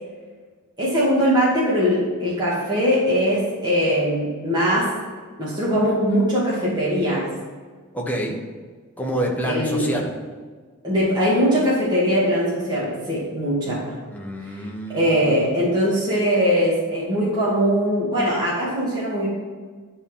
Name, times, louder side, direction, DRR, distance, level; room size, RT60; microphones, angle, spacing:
voice 1, 0.8-5.0 5.4-7.3 9.4-10.0 10.8-14.0 14.6-14.7 14.9-19.3, equal, 20° right, -9 dB, 2.4 m, -21 dB
voice 2, 7.9-8.4 9.0-10.2 14.1-15.3, equal, 5° left, -1 dB, 1.3 m, -27 dB
11.5 x 4.2 x 7.3 m, 1.5 s
head